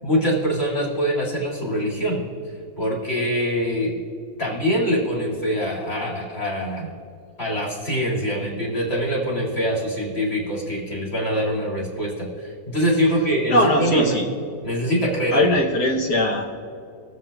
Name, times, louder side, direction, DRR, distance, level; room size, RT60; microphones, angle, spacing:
voice 1, 0.0-3.9 4.4-6.9 7.4-14.2 14.6-15.5, equal, 40° left, -5 dB, 2.4 m, -24 dB
voice 2, 13.5-14.3 15.3-16.4, left 1 dB, 75° left, 0 dB, 1.4 m, -20 dB
19.5 x 7.5 x 2.3 m, 2.5 s
omnidirectional pair, 1.7 m